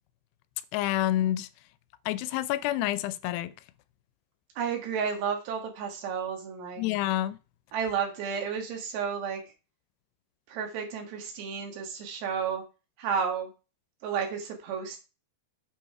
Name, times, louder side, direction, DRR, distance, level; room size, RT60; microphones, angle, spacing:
voice 1, 0.7-1.5 2.1-3.5 6.8-7.4, left 14 dB, 85° left, 2.6 m, -28 dB
voice 2, 4.6-6.8 7.7-9.4 10.5-12.6 13.0-13.5 14.0-15.0, right 6 dB, 80° right, 4.0 m, -32 dB
8.2 x 6.2 x 4.7 m
omnidirectional pair, 4.9 m